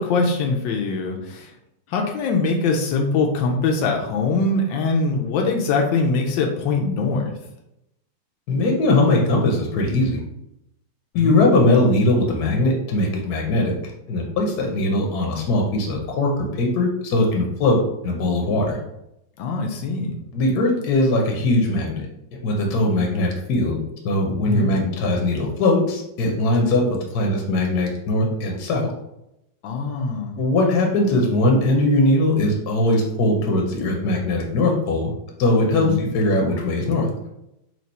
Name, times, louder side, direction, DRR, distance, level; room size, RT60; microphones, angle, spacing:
voice 1, 0.0-1.5 1.9-7.4 11.1-11.4 19.4-20.2 24.5-24.7 29.6-30.3 35.8-36.0, left 3 dB, 90° left, 1 dB, 1.3 m, -22 dB
voice 2, 8.5-10.2 11.1-13.8 14.1-17.8 18.0-18.8 20.3-22.1 22.4-23.8 24.0-28.9 30.4-35.1 35.4-37.1, left 2 dB, 65° left, 0 dB, 1.2 m, -20 dB
4.5 x 2.8 x 4.1 m, 0.86 s
omnidirectional pair, 1.9 m